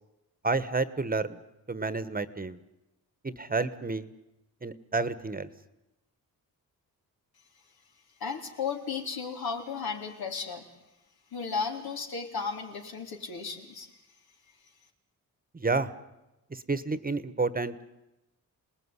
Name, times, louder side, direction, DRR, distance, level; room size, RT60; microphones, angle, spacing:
voice 1, 0.4-1.4 1.7-2.6 3.2-4.1 4.6-5.5 15.5-15.9 16.5-17.7, right 3 dB, 25° right, 14 dB, 1.2 m, -30 dB
voice 2, 8.2-10.6 11.3-13.9, left 5 dB, 80° left, 3 dB, 4.1 m, -34 dB
28.0 x 19.5 x 9.8 m, 0.98 s
wide cardioid pair, 110°, 36 cm